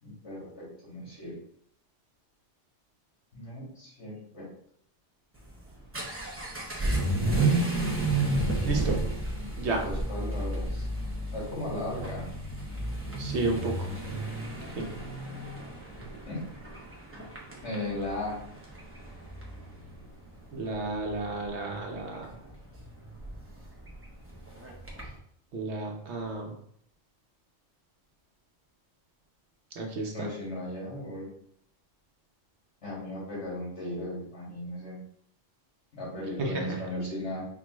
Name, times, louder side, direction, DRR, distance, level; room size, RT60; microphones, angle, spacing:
voice 1, 0.0-1.3 3.3-4.5 6.9-7.3 9.3-9.6 9.8-10.9 11.3-12.2 16.3-16.6 17.6-18.4 30.1-31.3 32.8-35.0 35.9-37.5, left 1 dB, 65° left, -6 dB, 2.2 m, -37 dB
Vehicle / Accelerating revving vroom, 5.4-25.2, right 2 dB, 15° right, 0.6 m, -32 dB
voice 2, 8.6-9.0 9.6-9.8 13.2-13.9 14.7-14.8 20.5-22.3 25.5-26.6 29.8-30.3 36.4-36.8, right 2 dB, 70° right, 1 dB, 1.1 m, -32 dB
5.1 x 2.4 x 3.1 m, 0.68 s
omnidirectional pair, 1.2 m